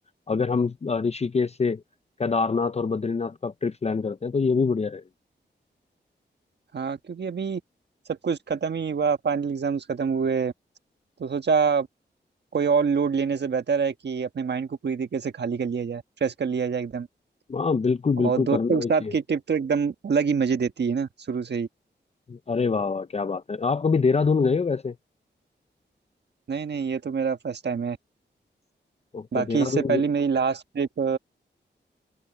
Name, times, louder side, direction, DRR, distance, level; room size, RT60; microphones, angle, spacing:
voice 1, 0.3-1.8 2.2-5.0 17.5-19.1 22.3-25.0 29.1-30.0, left 4 dB, 35° left, 0.6 m, -25 dB
voice 2, 6.7-7.6 8.1-10.5 11.2-11.9 12.5-17.1 18.2-21.7 26.5-28.0 29.3-31.2, right 6 dB, 65° right, 1.4 m, -26 dB
wide cardioid pair, 95°, 19 cm